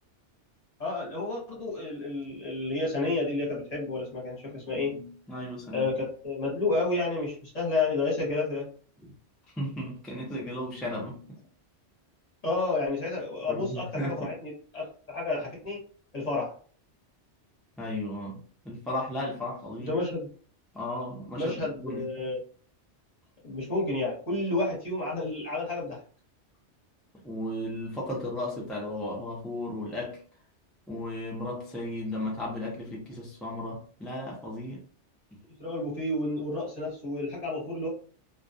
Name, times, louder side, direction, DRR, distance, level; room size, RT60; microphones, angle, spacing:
voice 1, 0.8-4.9 5.7-8.7 12.4-15.8 16.1-16.5 19.9-20.3 21.4-22.4 23.4-26.0 35.6-37.9, left 2 dB, 35° left, 0.9 m, -30 dB
voice 2, 4.7-5.9 9.6-11.4 13.5-14.3 17.8-20.0 20.7-22.1 27.2-30.2 30.9-34.8, left 1 dB, ahead, 0.3 m, -35 dB
2.3 x 2.2 x 2.6 m
omnidirectional pair, 1.2 m